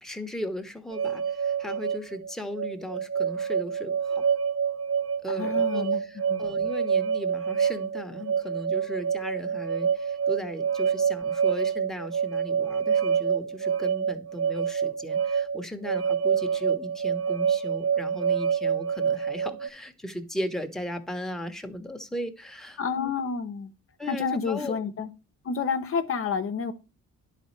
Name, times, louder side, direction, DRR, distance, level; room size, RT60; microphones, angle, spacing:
voice 1, 0.0-4.2 5.2-23.1 24.0-24.8, equal, ahead, 1.0 m, -37 dB
sound 1, 0.9-19.7, right 7 dB, 50° right, 0.7 m, -27 dB
voice 2, 5.3-6.0 6.3-6.4 22.8-23.7 24.1-25.1 25.4-26.7, left 5 dB, 45° left, 0.8 m, -29 dB
10.5 x 4.2 x 3.1 m
cardioid pair, 90°, 30 cm